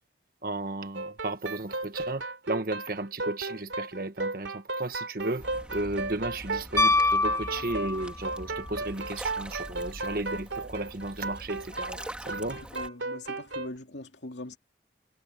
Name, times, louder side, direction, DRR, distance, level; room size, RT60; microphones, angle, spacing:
voice 1, 0.4-5.5 5.7-12.0 12.2-12.6, right 2 dB, 50° right, 1.3 m, -34 dB
sound 1, 0.9-13.7, right 3 dB, 90° right, 3.8 m, -35 dB
sound 2, 5.4-12.9, equal, 5° right, 2.3 m, -44 dB
Piano, 6.8-8.3 10.7-10.8, left 3 dB, 15° left, 0.7 m, -25 dB
voice 2, 12.4-14.6, left 1 dB, 70° left, 2.6 m, -42 dB
head